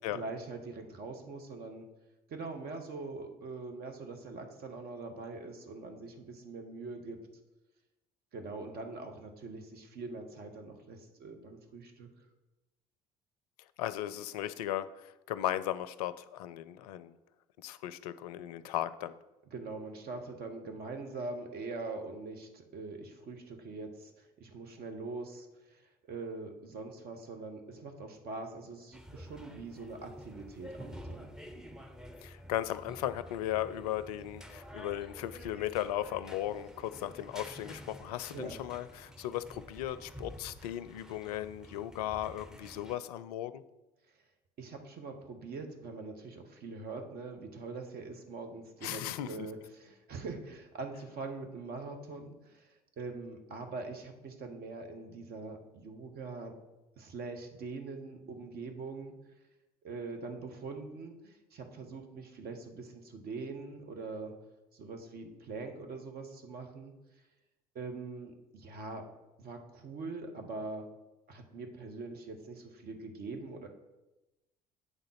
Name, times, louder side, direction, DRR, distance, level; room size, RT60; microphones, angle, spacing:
voice 1, 0.1-1.8 2.3-7.2 8.3-12.1 19.5-31.3 38.3-38.6 44.6-56.5 57.0-59.1 59.8-64.3 64.7-66.9 67.7-69.1 69.4-70.9 71.3-73.7, right 3 dB, 50° right, 5 dB, 1.3 m, -43 dB
voice 2, 13.8-17.1 17.6-19.2 32.2-43.6 48.8-49.3, left 12 dB, 75° left, 14 dB, 0.4 m, -36 dB
sound 1, 28.9-43.0, equal, 5° right, 0.8 m, -49 dB
8.0 x 3.8 x 5.8 m, 1.0 s
hypercardioid pair, 60°, 20 cm